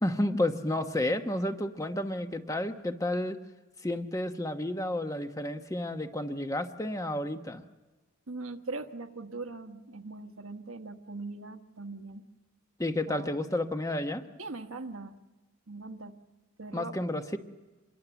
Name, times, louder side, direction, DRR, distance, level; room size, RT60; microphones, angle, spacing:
voice 1, 0.0-3.4 3.8-7.6 12.8-14.3 16.7-17.4, left 1 dB, 15° left, 7 dB, 1.1 m, -31 dB
voice 2, 8.3-12.2 13.1-13.3 14.4-15.1 15.7-16.1 16.6-16.9, right 3 dB, 90° right, 6 dB, 1.4 m, -40 dB
26.5 x 22.0 x 7.1 m, 1.2 s
head